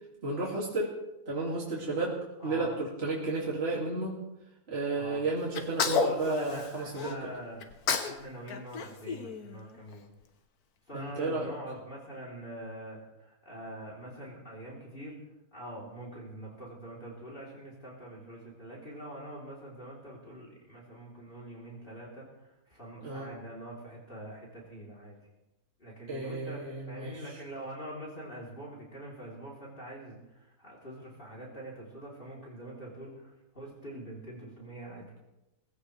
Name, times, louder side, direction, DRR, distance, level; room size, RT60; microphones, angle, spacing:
voice 1, 0.2-0.9 1.3-4.2 4.7-7.2 10.9-11.5 23.0-23.3 26.1-27.2, right 2 dB, 45° right, -4 dB, 2.7 m, -32 dB
voice 2, 2.4-2.8 4.9-5.2 5.8-7.7 8.0-10.1 10.9-15.2 15.5-25.2 25.8-35.1, right 1 dB, 35° left, -4 dB, 3.6 m, -44 dB
Sneeze, 5.5-7.1 7.6-8.2 8.5-9.9, left 5 dB, 90° left, 1.6 m, -31 dB
19.0 x 16.0 x 3.3 m, 0.98 s
omnidirectional pair, 1.6 m